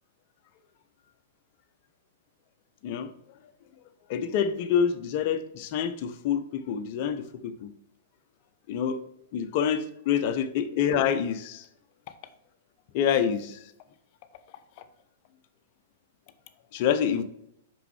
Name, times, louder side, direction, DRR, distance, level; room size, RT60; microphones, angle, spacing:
voice 1, 4.1-7.7 8.7-9.0 9.3-11.6 12.9-13.6 16.7-17.2, left 8 dB, 40° left, 9 dB, 0.7 m, -27 dB
5.9 x 5.4 x 3.4 m, 0.75 s
figure-of-eight pair, 105°, 0 cm